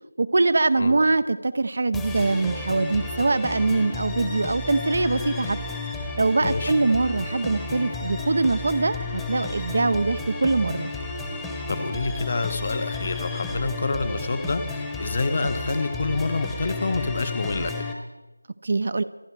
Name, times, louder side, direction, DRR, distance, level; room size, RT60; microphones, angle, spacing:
voice 1, 0.2-5.6 6.2-10.9 18.6-19.0, right 3 dB, 45° right, 13 dB, 0.6 m, -23 dB
sound 1, 1.9-17.9, left 3 dB, 5° left, 1.1 m, -32 dB
voice 2, 6.4-6.7 11.7-17.9, left 3 dB, 35° left, 10 dB, 1.1 m, -27 dB
26.5 x 11.0 x 4.7 m, 1.1 s
figure-of-eight pair, 170°, 0 cm